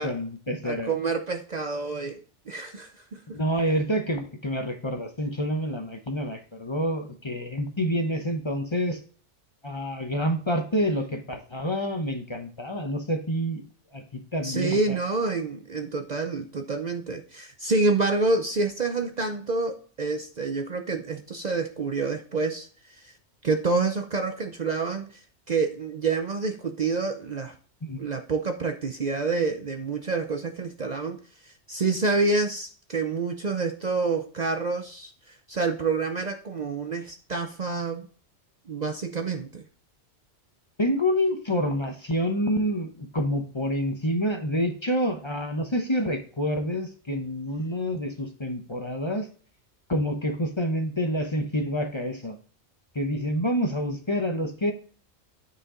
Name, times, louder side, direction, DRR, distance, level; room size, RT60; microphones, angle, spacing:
voice 1, 0.0-0.9 3.3-9.0 9.6-13.6 13.9-15.0 27.8-28.1 40.8-49.3 49.9-52.4 52.9-54.7, equal, 25° left, 5 dB, 0.8 m, -28 dB
voice 2, 0.6-3.2 14.4-23.1 23.4-25.2 25.5-27.5 28.0-31.2 31.7-35.1 35.5-38.1 38.7-39.7, right 3 dB, 45° right, 6 dB, 0.7 m, -28 dB
9.5 x 5.1 x 3.7 m, 0.42 s
omnidirectional pair, 1.2 m